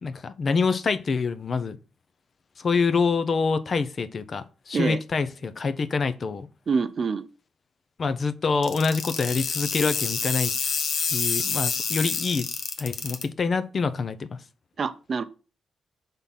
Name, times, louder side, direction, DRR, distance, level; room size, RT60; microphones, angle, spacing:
voice 1, 0.0-1.8 2.6-6.5 8.0-10.8 11.1-12.5 12.8-14.3, left 4 dB, 40° left, 0.5 m, -26 dB
voice 2, 6.7-7.3 14.8-15.2, right 5 dB, 45° right, 0.5 m, -26 dB
sound 1, 8.6-13.2, left 5 dB, 80° left, 1.0 m, -28 dB
5.7 x 3.6 x 5.4 m
wide cardioid pair, 155°, 0 cm